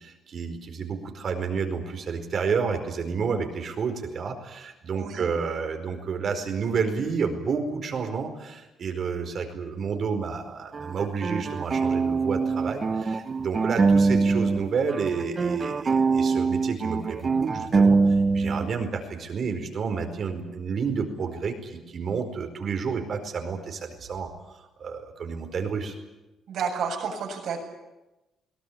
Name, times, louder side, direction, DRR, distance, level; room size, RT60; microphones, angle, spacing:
voice 1, 0.0-18.0 18.3-25.9, right 5 dB, 55° right, 6 dB, 4.7 m, -30 dB
voice 2, 4.9-5.3 26.5-27.6, right 6 dB, 70° right, 2 dB, 7.7 m, -30 dB
sound 1, 10.7-14.6 14.9-18.7, right 4 dB, 35° right, 0.9 m, -23 dB
22.5 x 18.0 x 10.0 m, 1.0 s
cardioid pair, 90°, 0 cm